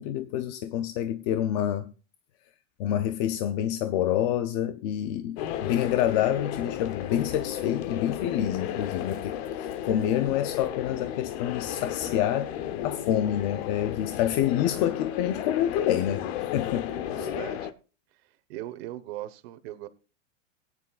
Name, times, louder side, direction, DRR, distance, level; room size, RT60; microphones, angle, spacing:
voice 1, 0.0-1.9 2.8-12.6 12.8-17.3, left 11 dB, 35° left, 0.5 m, -27 dB
sound 1, 5.4-17.7, left 10 dB, 55° left, 1.0 m, -34 dB
voice 2, 17.1-17.7 18.5-19.9, right 14 dB, 50° right, 1.1 m, -39 dB
18.0 x 9.5 x 2.4 m
supercardioid pair, 155°, 38 cm